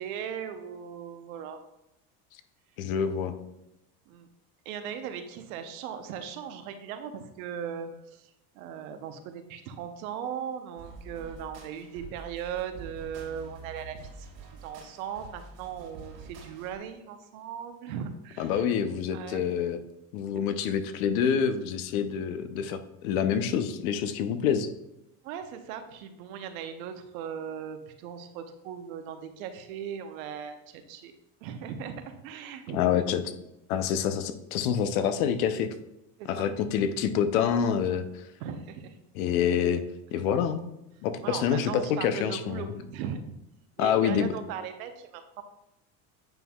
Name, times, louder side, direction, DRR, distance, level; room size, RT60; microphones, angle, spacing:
voice 1, 0.0-1.6 4.1-4.3 4.6-18.7 19.1-19.6 20.3-20.4 25.2-31.2 31.4-32.8 36.2-36.5 38.4-39.0 41.2-43.4 43.8-45.4, right 8 dB, 85° right, 7 dB, 0.9 m, -38 dB
voice 2, 2.8-3.3 18.4-19.8 20.1-24.7 32.7-33.2 33.7-35.7 36.3-38.2 39.2-39.8 40.1-40.6 41.0-41.7 42.0-42.7 43.8-44.3, left 8 dB, 90° left, 10 dB, 0.8 m, -27 dB
sound 1, 10.8-16.8, right 4 dB, 60° right, 2.1 m, -46 dB
9.1 x 5.4 x 2.3 m, 0.87 s
supercardioid pair, 135°, 41 cm